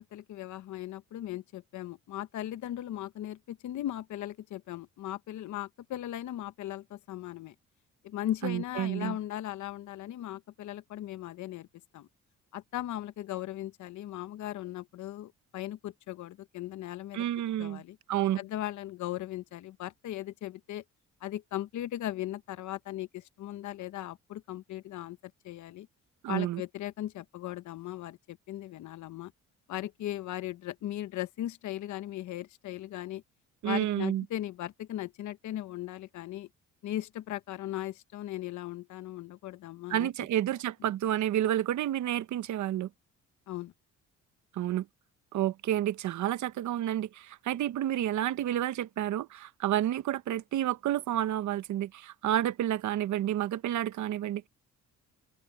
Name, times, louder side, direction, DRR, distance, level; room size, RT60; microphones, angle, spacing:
voice 1, 0.0-7.5 8.0-11.7 11.9-12.1 12.5-17.2 17.6-18.0 18.4-20.8 21.2-25.2 25.4-25.9 26.3-29.3 29.7-33.2 33.6-36.5 36.8-40.1 43.5-43.7, left 13 dB, 70° left, 0.9 m, -38 dB
voice 2, 8.4-9.2 17.1-17.8 18.1-18.4 26.2-26.6 33.6-34.2 39.9-42.9 44.5-44.9 45.3-54.5, right 12 dB, 70° right, 1.0 m, -30 dB
open air
cardioid pair, 90°, 30 cm